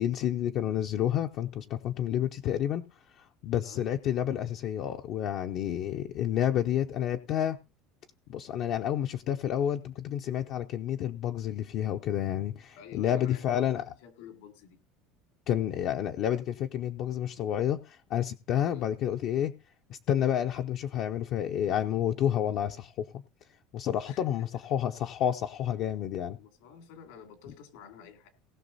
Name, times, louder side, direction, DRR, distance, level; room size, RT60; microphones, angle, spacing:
voice 1, 0.0-2.8 3.2-7.6 8.3-13.8 15.5-19.5 19.9-23.1 23.7-26.4, left 10 dB, 40° left, 0.6 m, -30 dB
voice 2, 12.7-14.8 18.6-18.9 24.1-24.6 26.4-28.3, left 8 dB, 80° left, 2.8 m, -50 dB
18.5 x 6.1 x 4.0 m
cardioid pair, 175°, 0 cm